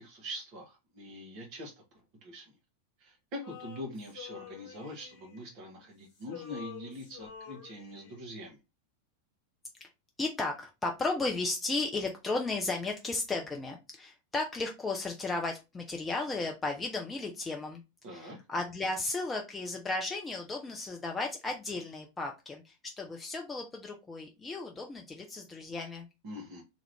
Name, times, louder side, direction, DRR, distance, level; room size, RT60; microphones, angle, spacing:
voice 1, 0.0-1.7 2.2-2.5 3.0-8.6 18.0-18.4 26.2-26.6, equal, 40° right, 1.0 m, -43 dB
Male singing, 3.4-5.9 6.2-8.3, left 9 dB, 50° left, 1.3 m, -48 dB
voice 2, 10.2-17.8 18.1-26.1, left 3 dB, 15° left, 0.5 m, -34 dB
2.8 x 2.4 x 3.3 m
figure-of-eight pair, 90°, 0 cm